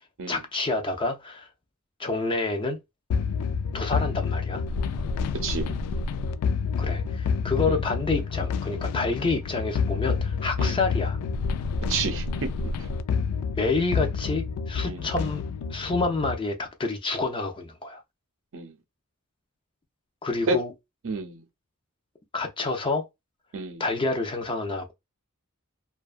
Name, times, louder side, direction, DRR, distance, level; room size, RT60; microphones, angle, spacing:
voice 1, 0.3-1.5 2.0-2.8 3.7-4.6 6.8-11.2 13.5-15.4 15.7-18.0 20.2-20.7 22.3-23.1 23.8-24.9, left 3 dB, 20° left, 0.4 m, -28 dB
sound 1, 3.1-16.4, left 5 dB, 85° left, 0.3 m, -28 dB
voice 2, 5.4-5.8 7.7-7.8 10.6-10.8 11.9-12.2 14.9-15.0 18.5-18.7 20.5-20.6 21.0-21.4 23.5-23.8, right 4 dB, 60° right, 0.6 m, -29 dB
2.5 x 2.3 x 2.4 m
head